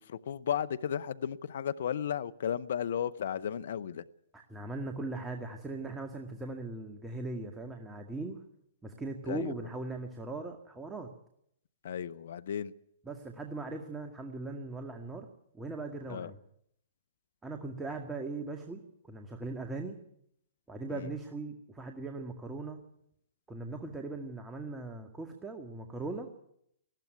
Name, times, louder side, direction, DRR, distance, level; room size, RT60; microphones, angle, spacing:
voice 1, 0.0-4.0 9.3-9.5 11.8-12.7 16.1-16.3 20.9-21.1, left 9 dB, 65° left, 0.8 m, -34 dB
voice 2, 4.3-8.4 8.8-11.1 13.0-15.3 15.5-16.4 17.4-18.8 19.1-20.0 20.7-22.8 23.5-26.3, right 3 dB, 10° right, 2.1 m, -39 dB
19.5 x 15.0 x 9.4 m
hypercardioid pair, 120°, 0 cm